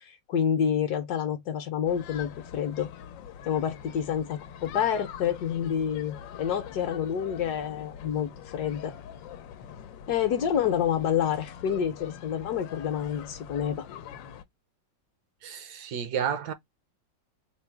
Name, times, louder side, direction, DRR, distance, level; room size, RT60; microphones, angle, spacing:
voice 1, 0.0-2.9 3.4-8.9 10.1-13.9, left 8 dB, 65° left, 1.1 m, -28 dB
sound 1, 1.9-14.4, left 8 dB, 90° left, 1.3 m, -44 dB
voice 2, 15.4-16.5, right 8 dB, 70° right, 1.1 m, -31 dB
3.8 x 2.0 x 4.4 m
omnidirectional pair, 2.0 m